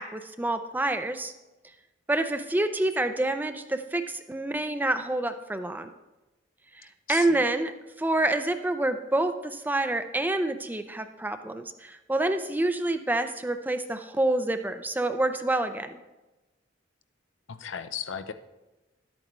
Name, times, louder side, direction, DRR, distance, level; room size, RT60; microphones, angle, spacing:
voice 1, 0.0-1.3 2.1-5.9 6.7-16.0, right 2 dB, 10° right, 8 dB, 0.4 m, -27 dB
voice 2, 7.1-7.4 17.5-18.3, left 8 dB, 80° left, 11 dB, 0.6 m, -36 dB
11.5 x 8.7 x 3.1 m, 1.0 s
head